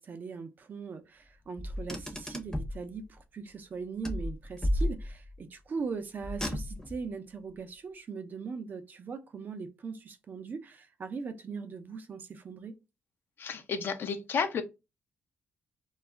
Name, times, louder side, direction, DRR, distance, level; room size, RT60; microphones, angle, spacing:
voice 1, 0.0-12.7, right 5 dB, 45° right, 0.5 m, -40 dB
Car, 1.6-2.8 4.0-5.4 6.2-7.0, left 1 dB, 10° left, 0.7 m, -33 dB
voice 2, 13.4-14.6, left 6 dB, 60° left, 0.5 m, -31 dB
2.3 x 2.0 x 3.4 m
cardioid pair, 80°, 4 cm